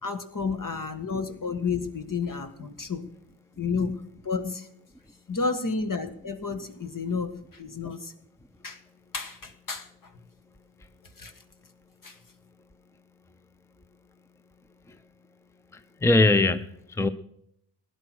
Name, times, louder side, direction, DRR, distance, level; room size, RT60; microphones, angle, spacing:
voice 1, 0.0-3.1 3.6-4.7 5.3-8.1 8.6-8.8 9.1-10.1 11.2-11.3 12.0-12.2, left 4 dB, 50° left, 8 dB, 1.9 m, -31 dB
voice 2, 15.7-17.1, left 2 dB, 5° left, 12 dB, 0.7 m, -22 dB
16.5 x 11.0 x 6.3 m, 0.75 s
cardioid pair, 65°, 43 cm